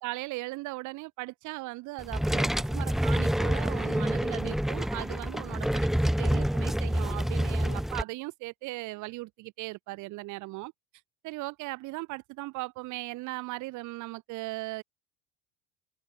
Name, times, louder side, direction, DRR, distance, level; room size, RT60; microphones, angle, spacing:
voice 1, 0.0-5.9 6.2-10.7 11.2-14.8, right 21 dB, 65° right, 6.7 m, -38 dB
sound 1, 2.0-8.0, equal, ahead, 0.6 m, -27 dB
open air
supercardioid pair, 95°, 32 cm